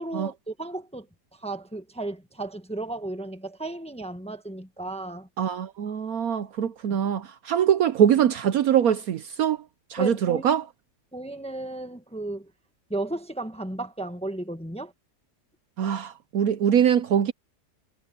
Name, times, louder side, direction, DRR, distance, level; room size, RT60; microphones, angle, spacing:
voice 1, 0.0-5.3 6.9-7.0 10.0-10.4 11.1-12.5 12.9-14.9, right 2 dB, 5° left, 1.0 m, -34 dB
voice 2, 5.4-9.6 9.9-10.6 15.8-17.3, right 9 dB, 65° right, 1.1 m, -23 dB
omnidirectional pair, 1.8 m